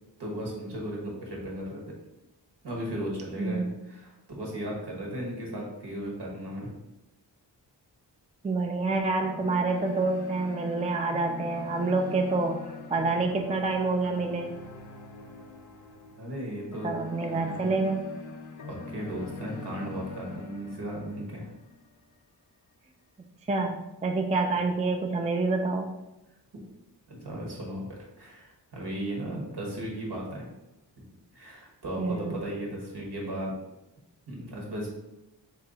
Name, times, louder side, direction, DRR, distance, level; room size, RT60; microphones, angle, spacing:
voice 1, 0.2-1.8 2.6-6.7 16.2-16.9 17.3-17.6 18.7-21.5 27.1-30.5 31.0-31.1 31.3-33.5 34.3-34.9, right 1 dB, 65° right, -2 dB, 1.3 m, -36 dB
voice 2, 3.4-3.7 8.4-12.6 12.9-14.5 16.8-18.0 23.5-25.9 32.0-32.4, right 3 dB, 20° right, 3 dB, 0.4 m, -27 dB
sound 1, 8.8-22.0, left 4 dB, 40° left, 0.6 m, -44 dB
3.1 x 2.7 x 3.8 m, 0.96 s
cardioid pair, 55°, 44 cm